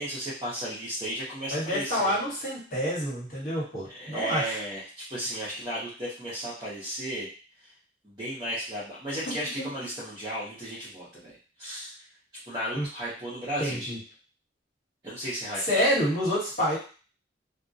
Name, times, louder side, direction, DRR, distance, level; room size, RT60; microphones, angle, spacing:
voice 1, 0.0-2.2 3.9-7.3 8.0-11.9 12.5-13.8 15.0-15.6, equal, 25° right, -10 dB, 0.7 m, -34 dB
voice 2, 1.5-4.6 9.2-9.7 12.7-12.9 13.6-14.0 15.6-16.8, equal, 50° left, -8 dB, 1.2 m, -28 dB
2.2 x 2.1 x 2.6 m, 0.38 s
head